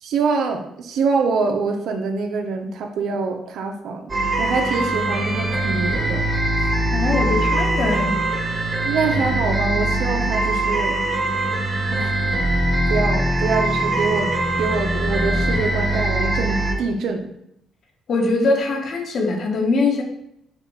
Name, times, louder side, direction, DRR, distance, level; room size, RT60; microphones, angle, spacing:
voice 1, 0.0-4.1 4.4-6.2 8.8-11.0 11.9-12.1 12.9-17.3, right 4 dB, 75° right, 4 dB, 0.9 m, -25 dB
sound 1, 4.1-16.7, right 1 dB, 25° right, 1.6 m, -22 dB
voice 2, 6.9-8.2 18.1-20.0, left 3 dB, 60° left, 2 dB, 1.4 m, -22 dB
6.6 x 2.5 x 5.5 m, 0.77 s
cardioid pair, 90°, 0 cm